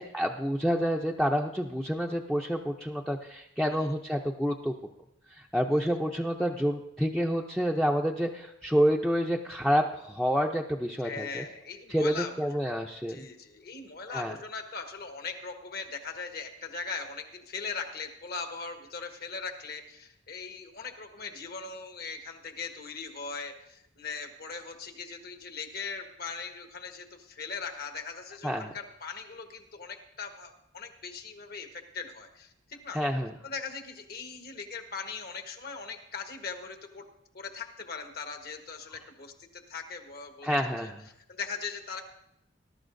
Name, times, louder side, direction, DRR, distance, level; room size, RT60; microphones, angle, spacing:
voice 1, 0.0-4.7 5.3-11.4 11.9-13.3 14.1-14.4 28.4-28.7 32.9-33.3 40.4-41.0, equal, ahead, 0 dB, 0.5 m, -28 dB
voice 2, 11.0-12.7 13.1-33.0 33.4-37.1 37.3-40.9 41.3-42.0, left 5 dB, 55° left, 5 dB, 1.4 m, -40 dB
20.0 x 12.0 x 2.6 m, 0.81 s
head